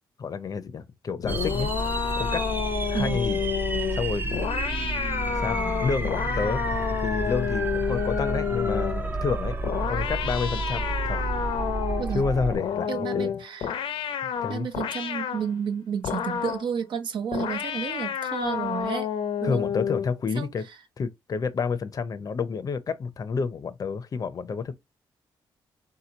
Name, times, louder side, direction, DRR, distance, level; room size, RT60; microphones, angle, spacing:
voice 1, 0.2-1.7 2.2-2.5 2.9-3.4 3.9-4.3 5.4-6.6 7.0-9.6 9.9-11.3 12.1-13.4 14.4-14.7 19.4-20.6 21.0-24.7, left 5 dB, 45° left, 0.6 m, -29 dB
sound 1, 1.2-9.1 9.6-12.1 12.5-15.5 16.0-16.7 17.3-20.2, left 8 dB, 85° left, 0.7 m, -30 dB
sound 2, 1.3-12.6, right 2 dB, 25° right, 0.6 m, -30 dB
voice 2, 12.0-12.3 12.9-13.7 14.5-19.1 19.4-19.7 20.4-20.5, right 7 dB, 65° right, 0.8 m, -31 dB
3.9 x 2.9 x 3.9 m
cardioid pair, 120°, 9 cm